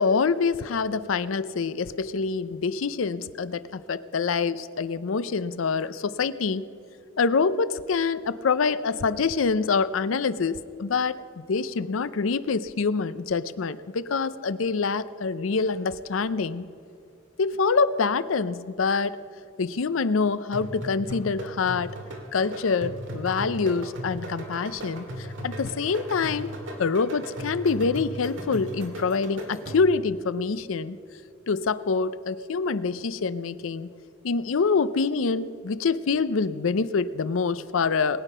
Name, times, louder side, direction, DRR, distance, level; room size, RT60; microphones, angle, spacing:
voice 1, 0.0-6.7 7.2-16.7 17.4-19.2 19.6-22.0 22.3-26.5 26.8-31.0 31.5-33.9 34.2-38.2, left 4 dB, 80° left, 15 dB, 0.5 m, -26 dB
sound 1, 20.5-30.1, right 1 dB, 70° right, 2.2 m, -37 dB
21.0 x 9.2 x 5.5 m, 2.5 s
head